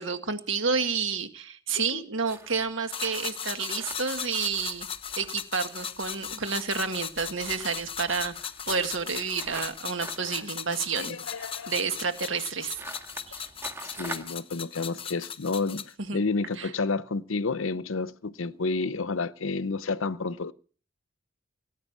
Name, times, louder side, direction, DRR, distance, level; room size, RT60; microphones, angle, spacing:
voice 1, 0.0-4.9 5.2-8.3 8.7-11.2 11.7-12.8 16.1-16.2 16.6-16.7, right 5 dB, 65° right, 1.8 m, -30 dB
sound 1, 2.2-14.4, right 1 dB, 10° right, 1.9 m, -45 dB
sound 2, 2.9-15.9, left 8 dB, 25° left, 0.8 m, -38 dB
voice 2, 11.0-11.7 13.8-20.5, left 3 dB, 70° left, 0.8 m, -30 dB
18.5 x 9.9 x 7.4 m
head